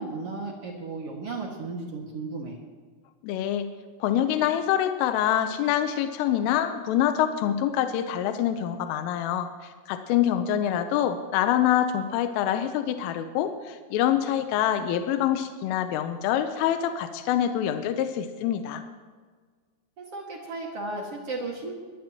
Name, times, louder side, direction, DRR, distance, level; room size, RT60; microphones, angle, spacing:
voice 1, 0.0-2.6 20.0-21.7, right 3 dB, 55° right, -1 dB, 1.7 m, -34 dB
voice 2, 3.2-3.7 4.0-18.8, left 10 dB, 80° left, 7 dB, 3.3 m, -25 dB
22.5 x 18.5 x 3.0 m, 1.5 s
omnidirectional pair, 5.9 m